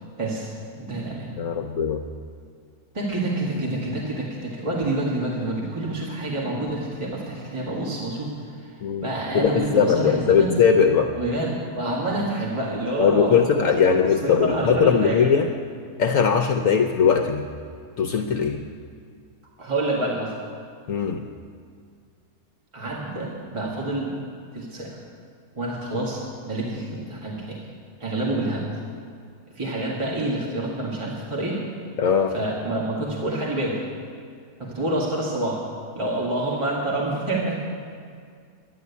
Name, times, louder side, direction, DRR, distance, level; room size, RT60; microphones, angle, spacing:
voice 1, 0.2-1.3 2.9-10.5 11.2-15.3 19.6-20.3 22.7-24.1 24.5-25.0 25.6-27.6 28.0-28.7 29.6-31.6 32.3-33.8 34.6-35.6 36.0-37.7, right 2 dB, 20° right, -4 dB, 1.9 m, -28 dB
voice 2, 1.4-2.0 8.8-9.1 9.3-11.1 13.0-15.5 16.0-17.5 18.0-18.6 20.9-21.2 32.0-32.3, left 6 dB, 65° left, 5 dB, 1.0 m, -20 dB
12.0 x 10.0 x 8.3 m, 2.2 s
omnidirectional pair, 1.6 m